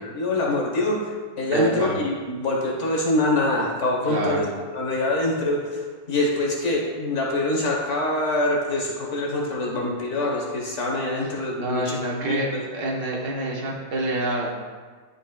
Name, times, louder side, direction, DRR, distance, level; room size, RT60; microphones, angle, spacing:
voice 1, 0.1-4.4 4.7-12.0 12.2-12.6, left 2 dB, 45° left, -2 dB, 1.0 m, -25 dB
voice 2, 1.5-1.9 4.1-4.4 11.6-12.5 12.7-14.5, right 1 dB, 60° right, -2 dB, 1.5 m, -26 dB
10.5 x 5.0 x 2.2 m, 1.5 s
omnidirectional pair, 2.4 m